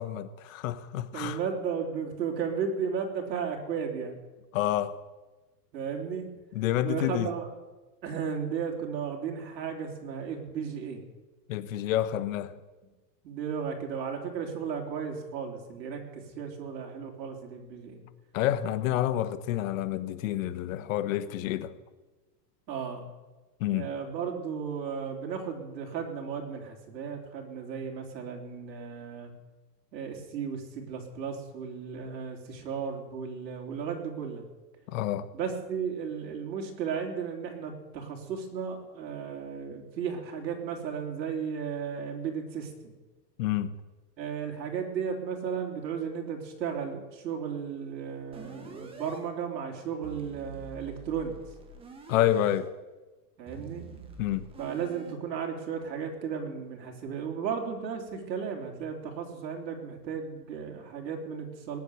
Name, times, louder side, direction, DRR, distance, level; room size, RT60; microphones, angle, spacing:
voice 1, 0.0-1.4 4.5-5.0 6.5-7.3 11.5-12.5 18.3-21.7 23.6-23.9 34.9-35.3 43.4-43.7 52.1-52.7 54.2-54.5, left 12 dB, 50° left, 1.2 m, -28 dB
voice 2, 1.1-4.2 5.7-6.3 6.8-7.5 8.0-11.0 13.2-18.0 22.7-23.0 23.7-29.3 29.9-34.5 35.3-42.9 44.2-51.4 53.4-53.9 54.6-61.8, right 7 dB, 85° right, 3.8 m, -34 dB
sound 1, 48.3-49.2 50.0-52.6 53.5-55.1, right 4 dB, 10° right, 1.3 m, -47 dB
19.0 x 7.7 x 9.6 m
supercardioid pair, 160°, 50 cm